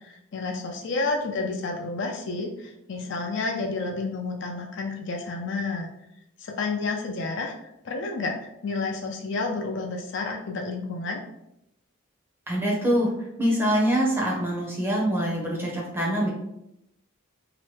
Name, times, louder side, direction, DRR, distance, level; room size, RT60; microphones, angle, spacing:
voice 1, 0.0-5.9 6.4-11.2, left 3 dB, 55° left, 2 dB, 0.4 m, -30 dB
voice 2, 12.5-13.1 13.4-16.3, equal, 10° right, -4 dB, 0.6 m, -24 dB
2.9 x 2.1 x 3.1 m, 0.82 s
head